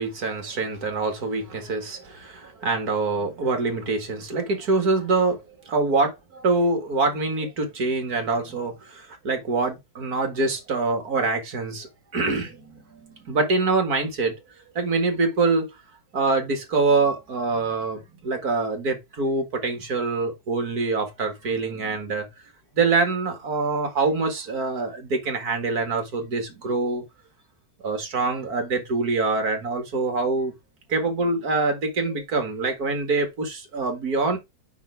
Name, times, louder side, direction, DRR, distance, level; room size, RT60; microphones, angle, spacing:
voice 1, 0.0-14.4 14.8-15.7 16.1-22.3 22.7-27.0 27.8-30.5 30.9-34.4, right 3 dB, 60° right, 2.3 m, -25 dB
7.1 x 5.8 x 3.4 m
omnidirectional pair, 1.9 m